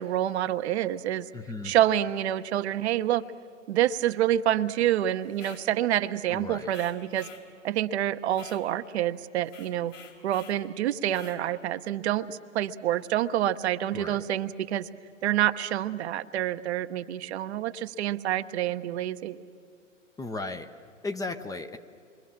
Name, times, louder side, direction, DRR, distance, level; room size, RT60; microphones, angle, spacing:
voice 1, 0.0-1.3 1.6-3.2 3.7-7.3 7.6-9.9 10.2-14.9 15.2-19.4, right 12 dB, 55° right, 11 dB, 0.9 m, -27 dB
voice 2, 1.3-1.7 6.3-6.7 13.9-14.2 20.2-20.7 21.0-21.8, left 3 dB, 10° left, 7 dB, 0.7 m, -35 dB
sound 1, 5.3-5.7 6.7-7.5 8.3-8.6 9.4-10.6 11.1-11.4, left 7 dB, 65° left, 4.1 m, -49 dB
27.5 x 23.0 x 7.3 m, 2.3 s
figure-of-eight pair, 105°, 39 cm